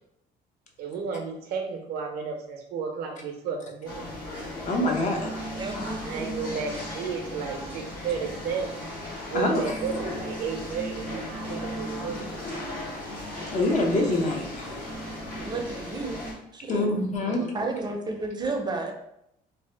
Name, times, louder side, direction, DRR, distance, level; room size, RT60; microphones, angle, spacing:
voice 1, 0.8-4.1 5.4-5.7 6.0-8.8 9.3-12.2 14.7-14.9 17.2-17.8, right 6 dB, 70° right, 3 dB, 0.6 m, -33 dB
sound 1, 3.8-16.3, left 1 dB, 65° left, 1.4 m, -36 dB
voice 2, 4.7-5.3 9.3-9.6 13.5-14.8 16.7-17.4, left 2 dB, 45° left, 1 dB, 0.7 m, -25 dB
voice 3, 5.6-6.3 11.9-12.3 15.4-16.2 16.5-16.9 17.5-18.9, right 2 dB, 25° right, 2 dB, 0.5 m, -32 dB
2.7 x 2.1 x 3.3 m, 0.77 s
cardioid pair, 110°, 17 cm